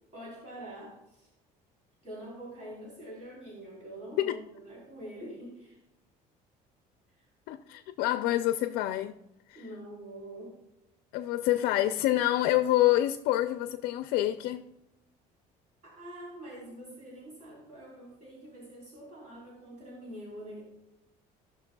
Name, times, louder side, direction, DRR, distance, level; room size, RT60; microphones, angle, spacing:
voice 1, 0.1-1.3 2.0-5.8 7.2-7.3 9.5-10.5 15.8-20.6, right 1 dB, 50° right, 3.7 m, -45 dB
voice 2, 7.5-9.2 9.5-9.6 11.1-14.7, left 14 dB, 80° left, 0.5 m, -27 dB
16.5 x 6.3 x 2.3 m
cardioid pair, 155°, 16 cm